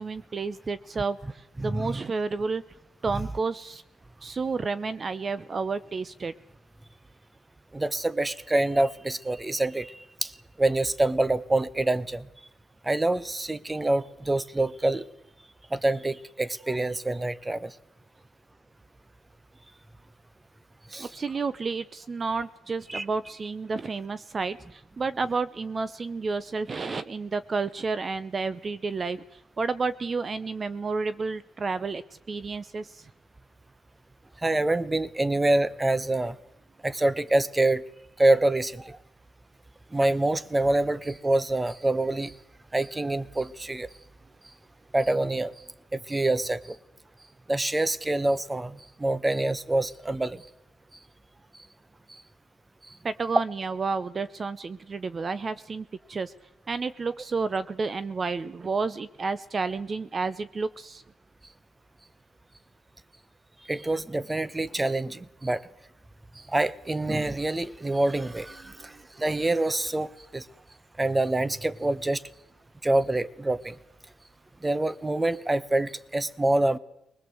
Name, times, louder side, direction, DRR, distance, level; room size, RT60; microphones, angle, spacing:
voice 1, 0.0-2.6 3.0-3.8 4.2-6.3 21.0-33.1 53.0-56.3 56.7-61.0, right 4 dB, 35° right, 14 dB, 0.8 m, -31 dB
voice 2, 1.6-2.0 7.7-10.3 10.6-12.3 12.8-15.1 15.7-17.7 20.9-21.1 22.9-23.0 34.4-36.4 36.8-37.8 38.2-39.0 39.9-42.3 42.7-43.9 44.9-45.5 45.9-46.8 47.5-50.4 52.1-52.2 63.7-65.6 66.5-70.4 71.0-72.2 72.8-73.8 74.6-76.8, right 2 dB, 15° right, 18 dB, 1.0 m, -26 dB
24.0 x 20.0 x 7.8 m, 0.84 s
cardioid pair, 90°, 0 cm